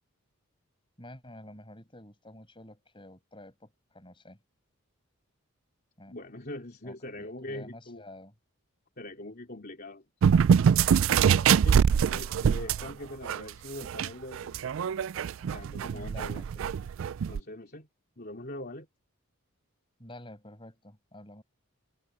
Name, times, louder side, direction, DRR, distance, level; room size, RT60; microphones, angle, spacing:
voice 1, 1.0-4.4 6.0-6.2 6.8-8.3 11.2-11.8 15.9-16.5 20.0-21.4, left 1 dB, 25° left, 7.4 m, -49 dB
voice 2, 6.1-8.0 9.0-10.0 11.2-11.8 12.1-14.6 15.5-16.7 17.3-17.9 18.2-18.9, left 1 dB, 45° left, 3.4 m, -42 dB
sound 1, 10.2-12.9 13.3-13.4 13.8-17.4, right 7 dB, 65° right, 0.3 m, -24 dB
head